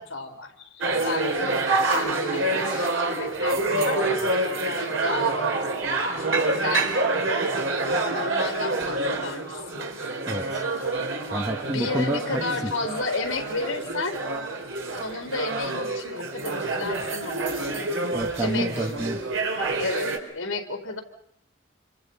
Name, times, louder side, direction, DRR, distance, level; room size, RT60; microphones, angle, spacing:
voice 1, 0.0-1.4 1.9-5.6 6.6-7.0 8.1-9.9 11.6-14.2 15.0-17.8 18.4-18.9 19.3-19.4 19.8-21.0, left 3 dB, 75° left, 5 dB, 4.4 m, -32 dB
sound 1, 0.8-20.2, right 2 dB, 75° right, 3.9 m, -27 dB
voice 2, 10.3-10.6 11.3-12.4 18.1-19.2, right 1 dB, 20° right, 4 dB, 1.7 m, -28 dB
28.0 x 26.5 x 5.7 m, 0.68 s
head